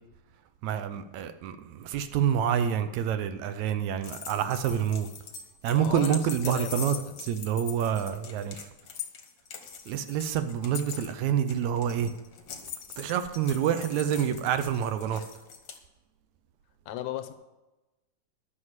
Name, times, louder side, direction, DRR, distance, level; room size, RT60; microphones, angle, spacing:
voice 1, 0.6-5.1 5.6-7.0 7.3-8.7 9.9-12.1 13.0-15.2, right 9 dB, 75° right, 10 dB, 2.0 m, -27 dB
sound 1, 4.0-15.8, left 7 dB, 55° left, 1.4 m, -42 dB
voice 2, 5.7-7.2 16.9-17.3, left 11 dB, 75° left, 9 dB, 1.9 m, -37 dB
11.5 x 6.5 x 7.3 m, 1.1 s
omnidirectional pair, 3.4 m